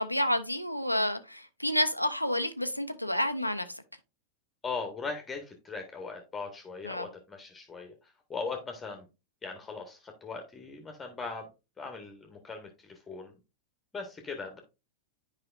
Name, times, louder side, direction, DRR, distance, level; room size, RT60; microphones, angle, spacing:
voice 1, 0.0-3.7 6.8-7.1, left 1 dB, 90° left, 0.5 m, -29 dB
voice 2, 4.6-7.9 8.3-9.0 9.4-11.5 11.8-13.3 13.9-14.6, left 4 dB, 15° left, 1.2 m, -39 dB
9.8 x 4.9 x 2.5 m
figure-of-eight pair, 90°, 0 cm